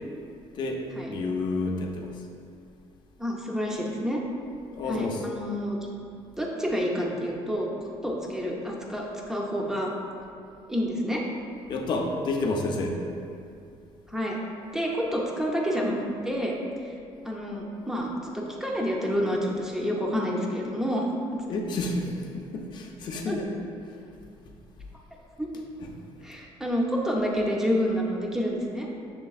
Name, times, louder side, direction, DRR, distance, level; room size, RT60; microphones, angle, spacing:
voice 1, 0.5-2.2 4.7-5.3 11.7-13.0 21.5-23.5 25.8-25.9, left 2 dB, 45° left, 1 dB, 0.5 m, -30 dB
voice 2, 3.2-4.2 4.9-5.8 6.4-7.7 8.0-9.9 10.7-11.2 14.1-14.4 14.7-15.9 16.2-16.5 17.2-21.4 23.3-23.4 25.4-25.5 26.2-28.9, equal, 5° right, -2 dB, 0.5 m, -28 dB
6.2 x 3.2 x 2.3 m, 2.5 s
cardioid pair, 150°, 11 cm